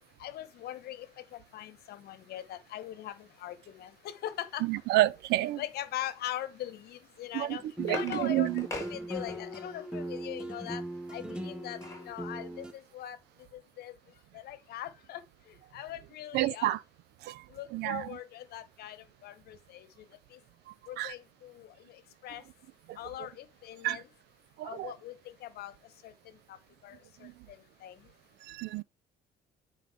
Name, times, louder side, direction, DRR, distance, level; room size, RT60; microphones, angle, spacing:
voice 1, 0.2-4.8 5.3-10.8 11.1-11.8 12.0-13.2 13.5-13.9 14.3-16.8 17.5-20.4 20.9-22.4 23.0-24.1 24.6-25.7 26.0-26.6 26.8-28.1, left 12 dB, 70° left, 1.1 m, -42 dB
voice 2, 4.7-5.6 7.3-8.7 16.3-16.8 17.2-17.4 17.7-18.1 21.0-21.1 22.9-23.0 23.8-24.0 24.6-24.9 27.2-27.3 28.5-28.8, right 17 dB, 80° right, 0.5 m, -29 dB
sound 1, 7.2-9.7 11.3-12.1 12.6-12.7 13.0-13.2, left 1 dB, 15° left, 3.9 m, -41 dB
sound 2, 7.8-12.7, right 1 dB, 5° right, 1.0 m, -39 dB
9.3 x 4.9 x 3.5 m
cardioid pair, 110°, 17 cm